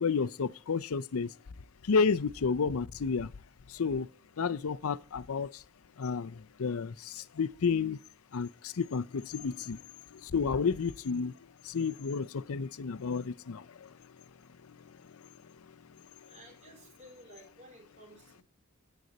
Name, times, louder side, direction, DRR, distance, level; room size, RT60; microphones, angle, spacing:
voice 1, 0.0-1.3 1.8-3.3 3.7-4.1 4.4-5.6 6.0-8.0 8.3-9.8 10.1-11.3 11.6-13.9 14.6-15.2, left 5 dB, 80° left, 0.5 m, -31 dB
voice 2, 16.2-18.4, right 1 dB, 35° right, 3.6 m, -54 dB
10.5 x 9.4 x 4.0 m
head